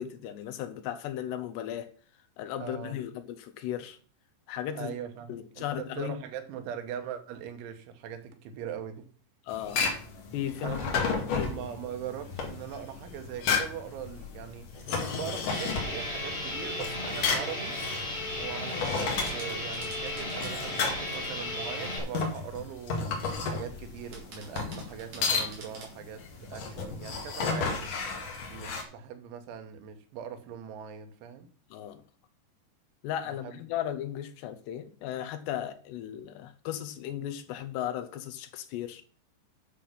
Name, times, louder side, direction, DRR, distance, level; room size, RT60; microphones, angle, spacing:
voice 1, 0.0-1.9 2.4-4.0 4.5-4.9 5.3-6.2 9.4-9.9 10.3-10.8 11.2-11.7 31.7-32.0 33.0-39.0, left 11 dB, 75° left, 2.9 m, -36 dB
voice 2, 2.6-3.0 4.8-9.1 10.6-17.8 18.3-23.1 23.5-31.5 33.4-33.6, right 9 dB, 90° right, 3.7 m, -41 dB
sound 1, 9.5-28.8, left 5 dB, 55° left, 3.3 m, -33 dB
sound 2, 15.5-22.0, left 1 dB, 15° left, 5.3 m, -35 dB
sound 3, 18.8-21.3 21.8-22.4 23.3-23.7 24.1-26.0, right 3 dB, 45° right, 4.5 m, -49 dB
10.0 x 6.8 x 5.9 m
omnidirectional pair, 5.3 m